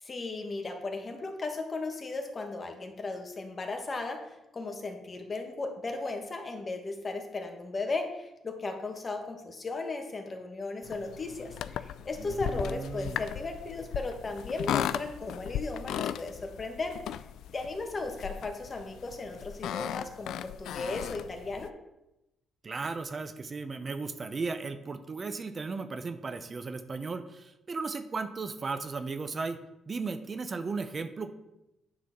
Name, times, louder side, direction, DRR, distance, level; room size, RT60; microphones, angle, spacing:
voice 1, 0.0-17.0 17.5-21.7, left 3 dB, 35° left, 4 dB, 1.4 m, -36 dB
sound 1, 10.8-21.7, left 10 dB, 80° left, 0.3 m, -37 dB
voice 2, 12.2-13.2 22.6-29.6 29.9-31.3, right 4 dB, 35° right, 9 dB, 0.6 m, -36 dB
9.5 x 4.1 x 5.8 m, 0.92 s
cardioid pair, 90°, 0 cm